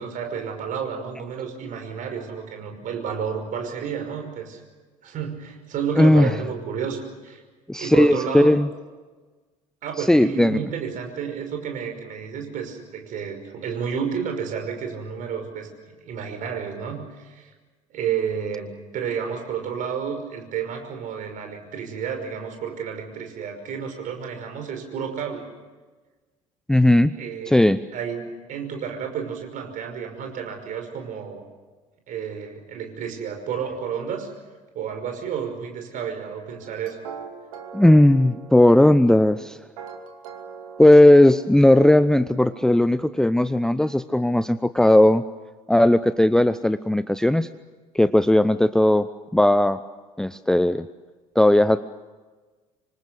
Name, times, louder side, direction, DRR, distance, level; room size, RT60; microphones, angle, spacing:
voice 1, 0.0-4.6 5.0-7.4 7.8-8.5 9.8-17.5 17.9-25.5 27.2-27.5 27.9-31.4 32.1-34.3 34.8-37.0, right 7 dB, 45° right, 5 dB, 5.7 m, -31 dB
voice 2, 6.0-6.3 7.7-8.7 10.0-10.6 26.7-27.2 27.5-27.8 37.7-39.6 40.8-45.2 45.7-47.5 47.9-49.8 50.2-50.9 51.4-51.8, left 1 dB, 5° left, 14 dB, 0.7 m, -17 dB
sound 1, 36.6-42.0, right 6 dB, 70° right, 2.5 m, -42 dB
27.0 x 25.0 x 6.5 m, 1.3 s
figure-of-eight pair, 60°, 18 cm